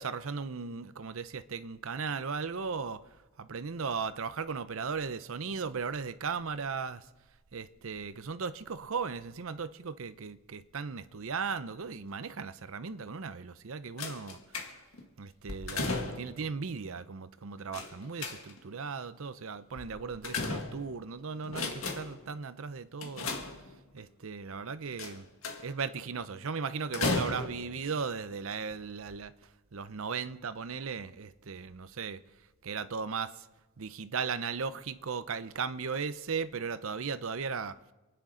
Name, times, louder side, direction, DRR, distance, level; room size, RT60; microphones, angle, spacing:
voice 1, 0.0-3.0 3.4-7.1 7.5-14.4 15.2-23.5 23.9-25.3 25.6-32.2 32.6-33.3 33.8-37.9, right 5 dB, 70° right, 0.7 m, -37 dB
sound 1, 14.0-15.0 15.5-16.4 17.7-18.8 19.8-21.1 21.4-22.3 23.0-24.0 25.0-25.8 26.9-27.8 28.6-28.7 29.1-29.2, left 3 dB, 75° left, 1.9 m, -35 dB
27.5 x 10.0 x 3.9 m
head